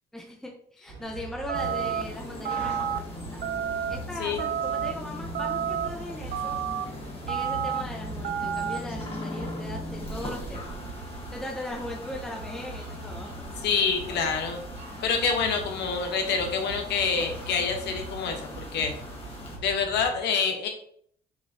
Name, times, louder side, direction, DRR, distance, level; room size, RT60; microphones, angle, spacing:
voice 1, 0.1-3.4 3.9-6.6 7.3-10.8 11.3-13.3, left 1 dB, ahead, 0 dB, 0.8 m, -39 dB
sound 1, 0.9-20.2, right 3 dB, 80° right, 1.2 m, -41 dB
sound 2, 1.5-19.6, left 2 dB, 30° left, 1.5 m, -41 dB
sound 3, 1.5-2.0 2.4-3.0 3.4-4.0 4.4-4.9 5.3-5.9 6.3-6.8 7.3-7.8 8.2-8.8, right 9 dB, 55° right, 0.4 m, -29 dB
voice 2, 13.6-14.6 15.0-18.9 19.6-20.7, left 5 dB, 75° left, 4 dB, 1.0 m, -27 dB
6.2 x 3.0 x 2.7 m, 0.64 s
cardioid pair, 95°, 18 cm